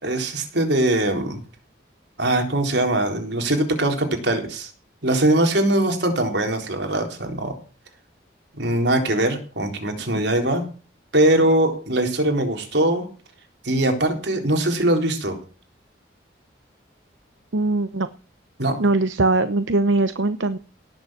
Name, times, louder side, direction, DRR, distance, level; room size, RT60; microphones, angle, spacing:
voice 1, 0.0-1.4 2.2-4.7 5.0-7.6 8.6-10.6 11.1-13.1 13.6-15.4 18.6-18.8, right 1 dB, 70° right, 4 dB, 3.8 m, -21 dB
voice 2, 17.5-18.1 18.8-20.6, right 2 dB, 90° right, 11 dB, 0.9 m, -21 dB
17.5 x 7.1 x 7.5 m, 0.37 s
head